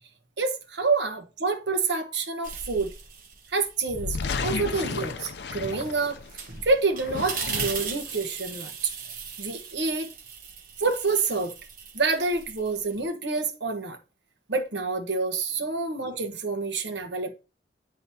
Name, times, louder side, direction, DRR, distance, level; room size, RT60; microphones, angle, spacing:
voice 1, 0.4-2.9 3.5-4.2 4.4-6.2 6.5-8.9 9.4-10.1 10.8-11.5 11.9-14.0 14.5-17.3, right 4 dB, 80° right, 1.2 m, -27 dB
sound 1, 2.4-4.0 4.4-13.0, right 6 dB, 50° right, 1.3 m, -38 dB
sound 2, 3.8-6.4 6.9-8.1, left 4 dB, 70° left, 0.6 m, -33 dB
9.7 x 4.0 x 2.8 m
head